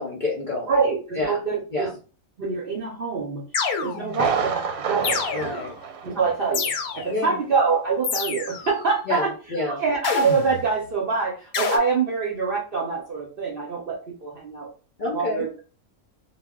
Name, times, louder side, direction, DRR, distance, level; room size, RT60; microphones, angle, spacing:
voice 1, 0.0-0.7 1.2-1.4 1.7-1.9 5.3-5.7 7.1-7.3 9.1-9.8 15.0-15.4, left 2 dB, 55° left, -3 dB, 0.6 m, -28 dB
voice 2, 0.7-1.9 2.4-3.5 3.8-5.2 6.0-9.3 9.7-14.7 15.1-15.6, right 4 dB, 55° right, -1 dB, 0.7 m, -25 dB
sound 1, 3.5-4.3 5.0-5.8 6.5-7.3 8.0-8.7 10.0-10.7 11.5-11.8, left 5 dB, 90° left, 1.1 m, -28 dB
Thunder, 4.1-6.7 7.0-7.1 7.6-7.7, right 6 dB, 90° right, 1.1 m, -28 dB
2.2 x 2.1 x 3.5 m, 0.36 s
omnidirectional pair, 1.5 m